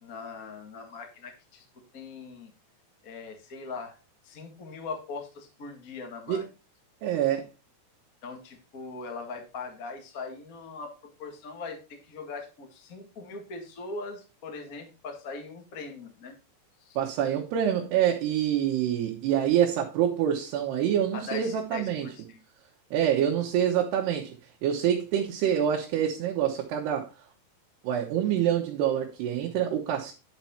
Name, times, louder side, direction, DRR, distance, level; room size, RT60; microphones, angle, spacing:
voice 1, 0.0-1.6 1.9-2.5 3.0-4.0 4.2-6.4 8.2-10.9 11.2-16.3 16.8-17.0 21.1-22.4, left 4 dB, 55° left, 0.9 m, -40 dB
voice 2, 7.0-7.5 17.0-22.1 22.9-24.3 24.6-27.1 27.8-30.1, right 10 dB, 75° right, 3.1 m, -26 dB
10.5 x 5.8 x 4.3 m
omnidirectional pair, 4.8 m